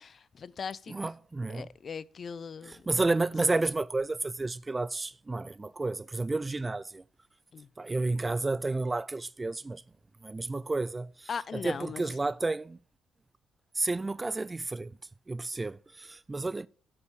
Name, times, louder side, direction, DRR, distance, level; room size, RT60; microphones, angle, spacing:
voice 1, 0.0-1.0 1.5-2.9 3.4-3.6 7.5-7.7 10.4-10.5 11.3-12.1, left 6 dB, 45° left, 0.4 m, -39 dB
voice 2, 0.9-1.7 2.7-7.0 7.8-9.8 10.2-12.8 13.7-15.0 15.3-16.7, right 3 dB, 20° right, 0.4 m, -31 dB
8.8 x 7.9 x 4.6 m
cardioid pair, 90°, 0 cm